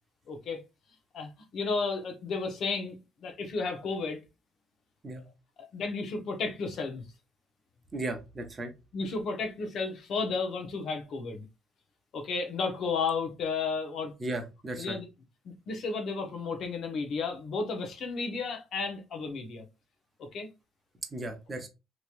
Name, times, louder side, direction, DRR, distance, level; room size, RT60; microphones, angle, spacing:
voice 1, 0.3-0.6 1.1-3.0 3.2-4.2 5.6-7.0 8.9-11.4 12.1-14.1 14.8-15.0 15.4-19.7 20.2-20.5, left 4 dB, 60° left, 1.0 m, -33 dB
voice 2, 7.9-8.7 14.2-15.0 21.1-21.7, right 2 dB, 25° right, 0.9 m, -36 dB
3.1 x 3.0 x 2.4 m
cardioid pair, 110°, 0 cm